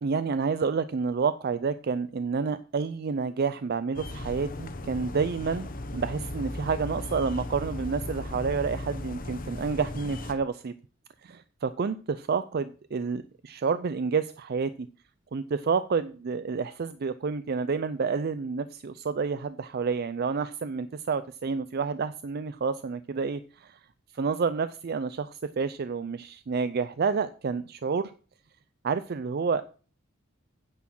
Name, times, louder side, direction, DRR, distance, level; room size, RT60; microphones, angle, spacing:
voice 1, 0.0-5.7 5.9-10.7 11.2-14.7 15.3-23.8 24.1-28.1 28.8-29.8, right 5 dB, 50° right, 13 dB, 0.4 m, -29 dB
sound 1, 3.9-10.3, left 1 dB, 45° left, 1.0 m, -36 dB
9.6 x 6.0 x 6.1 m, 0.37 s
head